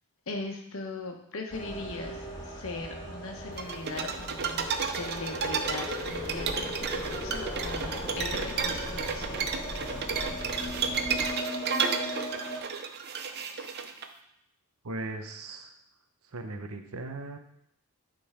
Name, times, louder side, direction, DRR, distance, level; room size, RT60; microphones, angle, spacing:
voice 1, 0.3-9.5, left 3 dB, 65° left, 3 dB, 1.1 m, -39 dB
sound 1, 1.5-12.6, equal, 20° left, 1.8 m, -38 dB
sound 2, 3.6-14.1, right 6 dB, 45° right, 0.6 m, -32 dB
sound 3, 6.0-11.3, equal, 5° right, 1.3 m, -41 dB
voice 2, 14.8-15.7 16.3-17.4, right 2 dB, 75° right, 6 dB, 0.9 m, -38 dB
9.8 x 3.9 x 4.9 m, 0.76 s
head